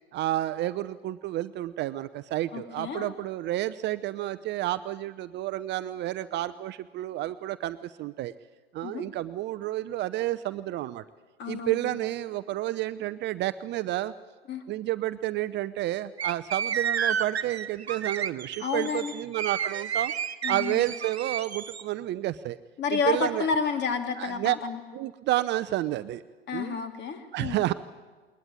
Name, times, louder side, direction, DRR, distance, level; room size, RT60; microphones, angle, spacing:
voice 1, 0.1-8.3 8.7-11.0 11.5-14.1 14.7-20.1 20.5-22.6 22.9-23.5 24.2-24.5 24.9-26.2 26.5-26.8 27.3-27.7, right 15 dB, 35° right, 13 dB, 0.7 m, -30 dB
voice 2, 2.5-3.1 8.8-9.0 11.4-11.8 14.5-14.6 18.6-19.1 20.4-20.8 22.8-24.8 26.5-27.6, left 5 dB, 35° left, 7 dB, 2.9 m, -30 dB
sound 1, 16.2-21.8, right 8 dB, 85° right, 1.0 m, -31 dB
21.0 x 20.0 x 9.5 m, 1.4 s
figure-of-eight pair, 85°, 31 cm